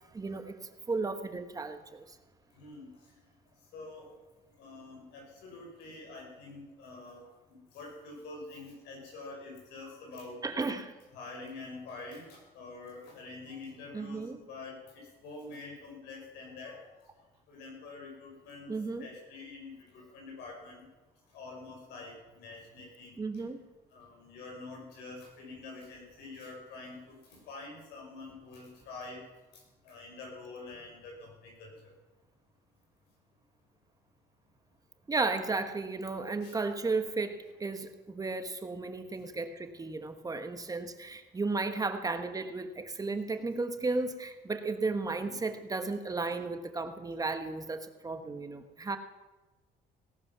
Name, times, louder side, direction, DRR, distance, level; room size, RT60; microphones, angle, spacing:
voice 1, 0.1-0.6 0.9-2.2 10.4-10.9 13.9-14.4 18.7-19.1 23.2-23.6 35.1-49.0, right 3 dB, 20° right, 8 dB, 1.2 m, -34 dB
voice 2, 2.5-2.9 3.7-4.1 4.6-7.2 7.5-10.4 11.1-14.2 14.5-16.8 17.5-18.7 19.0-20.8 21.3-23.2 23.9-27.1 27.5-29.2 29.8-31.7 36.4-36.5 43.3-43.4 45.2-45.5, left 3 dB, 85° left, 0 dB, 5.8 m, -46 dB
17.5 x 11.5 x 6.0 m, 1.2 s
cardioid pair, 110°, 17 cm